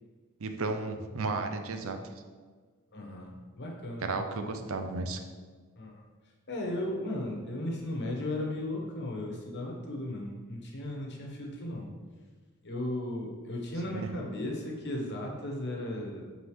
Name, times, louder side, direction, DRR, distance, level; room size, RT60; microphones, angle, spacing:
voice 1, 0.4-2.0 4.0-5.2 13.9-14.1, right 3 dB, 65° right, 6 dB, 0.6 m, -33 dB
voice 2, 2.9-3.3 3.6-4.5 5.8-6.0 6.5-11.9 12.6-16.4, left 1 dB, 50° left, -1 dB, 1.3 m, -36 dB
5.6 x 4.0 x 4.7 m, 1.5 s
head